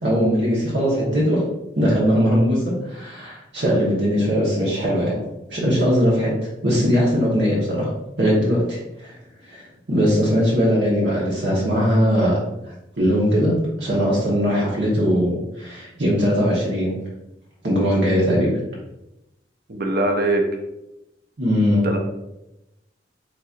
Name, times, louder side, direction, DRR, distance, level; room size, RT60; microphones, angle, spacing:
voice 1, 0.0-1.4 1.7-5.1 5.5-6.3 6.6-7.9 8.2-9.1 9.5-12.4 13.0-16.9 17.6-18.5 21.4-21.9, equal, 75° right, -6 dB, 1.1 m, -20 dB
voice 2, 19.7-20.4 21.8-22.0, right 2 dB, 60° right, 4 dB, 0.6 m, -21 dB
4.2 x 3.9 x 2.4 m, 0.91 s
head